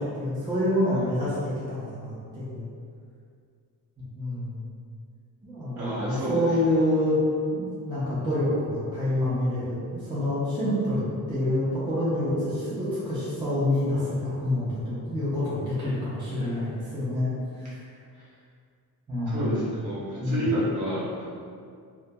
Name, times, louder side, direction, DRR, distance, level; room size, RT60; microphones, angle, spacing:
voice 1, 0.0-2.7 4.0-4.6 5.4-7.2 7.5-17.8 19.1-19.5 20.2-20.5, left 1 dB, 15° right, -11 dB, 0.4 m, -27 dB
voice 2, 5.8-6.4 19.3-21.2, equal, 50° right, -10 dB, 0.9 m, -29 dB
2.2 x 2.1 x 2.7 m, 2.2 s
wide cardioid pair, 165°, 38 cm